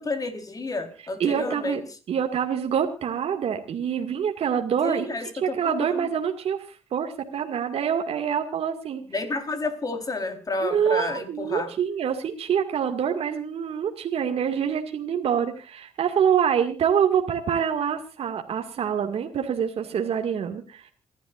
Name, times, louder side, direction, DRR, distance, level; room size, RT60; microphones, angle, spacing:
voice 1, 0.0-1.8 4.8-6.1 9.1-11.7, left 3 dB, 35° left, 8 dB, 4.0 m, -30 dB
voice 2, 1.2-1.8 2.1-5.1 5.4-9.0 10.6-20.9, right 8 dB, 65° right, 4 dB, 2.2 m, -26 dB
28.0 x 12.0 x 2.5 m, 0.34 s
cardioid pair, 85°, 11 cm